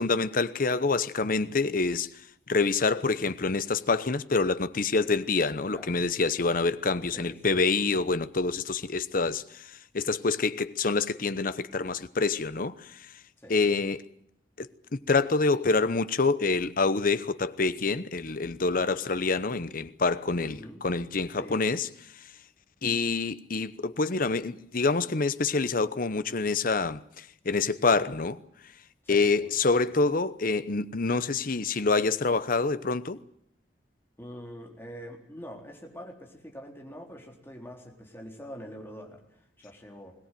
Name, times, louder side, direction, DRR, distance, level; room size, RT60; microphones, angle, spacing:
voice 1, 0.0-2.1 2.5-13.1 13.5-14.0 14.6-21.9 22.8-28.4 29.1-33.2, left 3 dB, 50° left, 0.9 m, -27 dB
voice 2, 5.7-6.0 7.1-7.6 13.4-13.8 20.4-20.8 21.4-21.7 29.0-29.5 34.2-40.1, equal, 15° left, 3.9 m, -45 dB
21.5 x 18.5 x 9.3 m
head